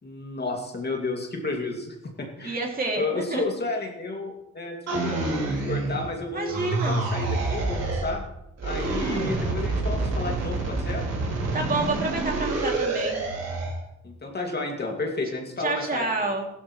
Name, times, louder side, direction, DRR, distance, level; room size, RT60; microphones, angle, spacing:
voice 1, 0.0-2.6 3.0-8.2 8.6-11.0 14.0-16.3, left 3 dB, 35° left, 1 dB, 2.4 m, -32 dB
voice 2, 2.4-3.4 6.3-7.0 11.5-13.2 15.6-16.5, right 3 dB, 30° right, 0 dB, 2.8 m, -28 dB
sound 1, 4.9-6.2 6.5-8.2 8.6-13.8, right 3 dB, 55° right, 4.7 m, -27 dB
15.5 x 12.5 x 3.2 m, 0.84 s
cardioid pair, 90°, 30 cm